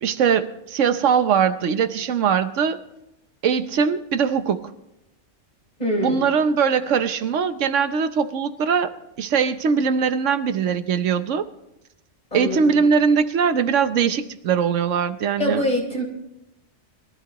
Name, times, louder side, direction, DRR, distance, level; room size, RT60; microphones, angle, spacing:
voice 1, 0.0-2.8 3.4-4.7 6.0-11.5 12.3-15.6, right 6 dB, 80° right, 11 dB, 1.1 m, -21 dB
voice 2, 5.8-6.3 12.3-12.8 15.4-16.0, left 1 dB, 35° left, -1 dB, 4.0 m, -24 dB
22.5 x 13.5 x 3.0 m, 0.89 s
omnidirectional pair, 1.2 m